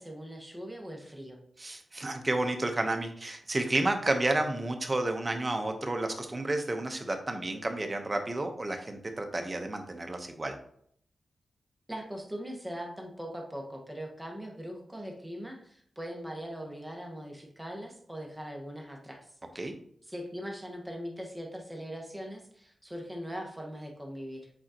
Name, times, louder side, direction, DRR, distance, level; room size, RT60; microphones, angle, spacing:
voice 1, 0.0-1.4 11.9-19.3 20.1-24.5, equal, 10° right, 1 dB, 1.5 m, -40 dB
voice 2, 1.6-10.6 19.5-19.7, right 2 dB, 30° right, 5 dB, 1.1 m, -31 dB
7.5 x 4.3 x 3.0 m, 0.65 s
cardioid pair, 65°, 0 cm